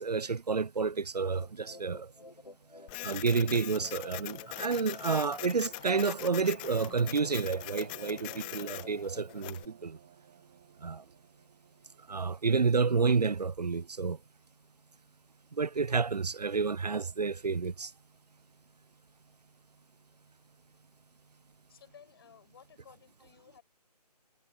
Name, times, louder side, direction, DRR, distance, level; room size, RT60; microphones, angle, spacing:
voice 1, 0.0-2.1 3.0-10.0 10.8-11.0 12.1-14.2 15.5-17.9, right 5 dB, 75° right, 0.6 m, -30 dB
sound 1, 1.1-9.4, left 2 dB, 85° left, 2.1 m, -53 dB
Printer, 2.9-9.7, left 24 dB, 15° left, 1.1 m, -43 dB
sound 2, 5.3-13.2, right 12 dB, 10° right, 0.5 m, -55 dB
voice 2, 21.7-23.6, left 8 dB, 35° left, 7.3 m, -57 dB
figure-of-eight pair, 150°, 21 cm